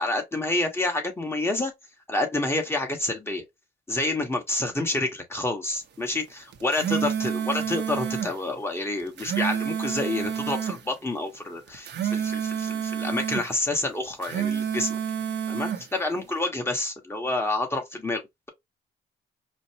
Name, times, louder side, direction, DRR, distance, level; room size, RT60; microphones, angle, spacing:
voice 1, 0.0-1.7 2.1-3.4 3.9-15.0 15.5-18.2, left 2 dB, 10° left, 1.3 m, -28 dB
sound 1, 6.5-8.3 9.0-10.8 11.7-13.5 14.1-15.8, right 8 dB, 60° right, 0.9 m, -29 dB
5.2 x 2.2 x 2.8 m
cardioid pair, 90°, 20 cm